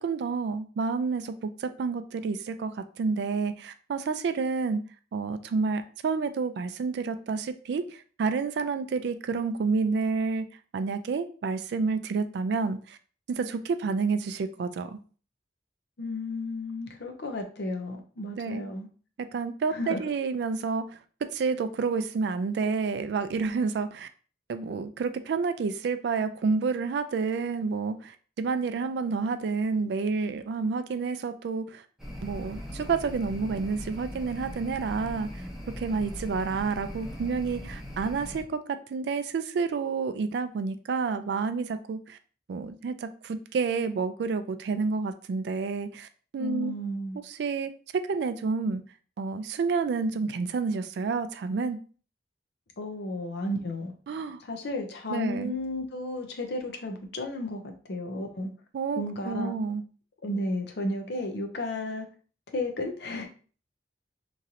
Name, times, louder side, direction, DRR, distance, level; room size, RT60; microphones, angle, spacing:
voice 1, 0.0-4.8 5.1-10.5 10.7-13.0 13.3-15.0 18.4-18.7 19.2-20.8 21.3-24.1 24.5-31.9 32.2-35.4 35.8-42.2 42.5-46.7 47.3-48.8 49.2-51.8 54.1-54.4 55.1-55.5 58.7-59.8, right 4 dB, 65° right, 10 dB, 0.3 m, -29 dB
voice 2, 16.0-18.9 19.7-20.0 46.4-47.2 52.8-53.9 54.4-58.5 59.0-59.5 60.2-62.1 62.5-63.3, left 1 dB, 65° left, 4 dB, 0.6 m, -33 dB
sound 1, 32.0-38.4, equal, 5° right, 0.8 m, -40 dB
3.0 x 2.5 x 2.7 m, 0.40 s
head